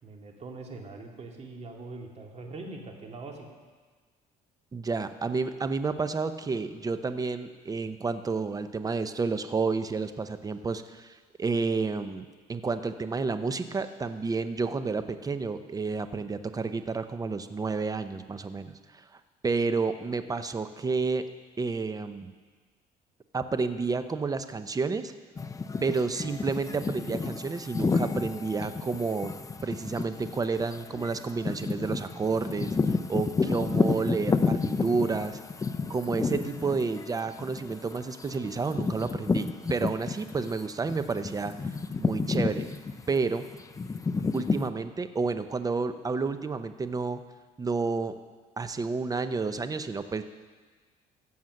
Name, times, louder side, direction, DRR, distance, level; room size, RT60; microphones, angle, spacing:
voice 1, 0.0-3.5, right 3 dB, 40° right, 1 dB, 2.2 m, -42 dB
voice 2, 4.7-21.2 21.6-22.3 23.3-25.1 25.8-29.3 29.6-35.4 35.9-41.5 42.0-42.7 43.1-43.5 44.3-47.2 47.6-48.2 48.6-50.2, right 4 dB, 20° right, 10 dB, 0.7 m, -30 dB
sound 1, 25.4-40.5 40.9-44.7, left 4 dB, 20° left, 0.6 m, -31 dB
15.5 x 7.3 x 6.5 m, 1.4 s
cardioid pair, 110°, 17 cm